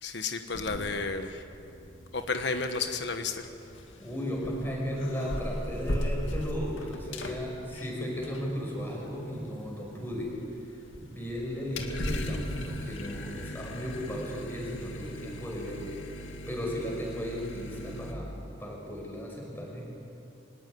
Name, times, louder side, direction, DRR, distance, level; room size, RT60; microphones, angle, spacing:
voice 1, 0.0-1.4 2.1-3.5, left 4 dB, 60° left, 7 dB, 1.3 m, -32 dB
sound 1, 0.5-1.3 1.5-18.1, left 1 dB, 80° left, 2.1 m, -39 dB
voice 2, 4.0-10.3 11.0-15.9 16.2-19.8, equal, 10° left, -1 dB, 6.1 m, -35 dB
24.5 x 19.0 x 9.5 m, 2.7 s
head